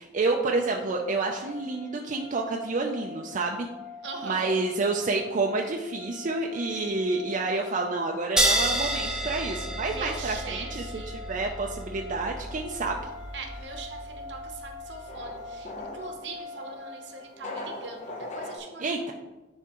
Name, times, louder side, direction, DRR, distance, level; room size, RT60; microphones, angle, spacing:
voice 1, 0.0-3.7 4.2-11.0 11.3-13.0 18.8-19.1, right 3 dB, 45° right, 1 dB, 0.4 m, -29 dB
sound 1, 0.7-18.6, left 4 dB, 70° left, 1.8 m, -45 dB
voice 2, 4.0-4.5 9.8-11.2 13.3-19.1, right 4 dB, 70° right, 3 dB, 0.9 m, -41 dB
sound 2, 8.4-15.3, right 1 dB, 5° right, 0.7 m, -31 dB
sound 3, 12.5-18.6, left 2 dB, 40° left, 0.8 m, -42 dB
10.0 x 3.6 x 3.0 m, 1.1 s
head